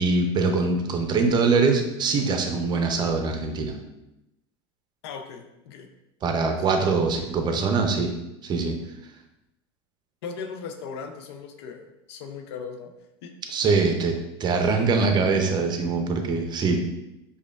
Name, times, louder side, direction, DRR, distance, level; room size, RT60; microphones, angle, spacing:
voice 1, 0.0-3.8 6.2-8.1 8.4-8.8 13.5-16.8, right 4 dB, 30° right, 4 dB, 0.6 m, -23 dB
voice 2, 5.0-5.9 10.2-12.9 13.2-13.3, left 5 dB, 70° left, 5 dB, 0.4 m, -38 dB
5.0 x 2.3 x 2.3 m, 0.90 s
hypercardioid pair, 95°, 14 cm